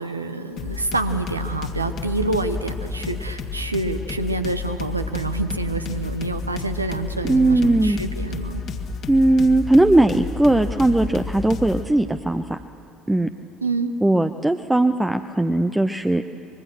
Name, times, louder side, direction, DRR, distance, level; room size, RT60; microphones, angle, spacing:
voice 1, 0.0-8.6 13.6-13.9, right 2 dB, 90° right, 9 dB, 0.8 m, -27 dB
sound 1, 0.6-11.9, left 4 dB, 50° left, 1.7 m, -31 dB
voice 2, 7.2-8.0 9.1-12.6 13.1-13.3 14.0-16.2, right 2 dB, 10° right, 8 dB, 0.6 m, -18 dB
25.5 x 21.5 x 6.3 m, 2.9 s
figure-of-eight pair, 60°, 0 cm